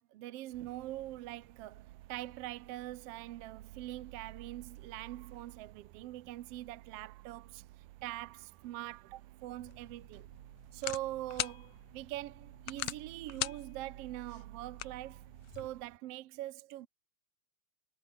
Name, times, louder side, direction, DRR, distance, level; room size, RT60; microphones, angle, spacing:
voice 1, 0.0-7.6 8.0-10.3 10.7-15.2 15.5-16.9, right 15 dB, 70° right, 1.5 m, -43 dB
sound 1, 0.5-16.0, right 16 dB, 90° right, 2.5 m, -54 dB
sound 2, 9.6-15.7, left 15 dB, 75° left, 1.5 m, -43 dB
omnidirectional pair, 3.5 m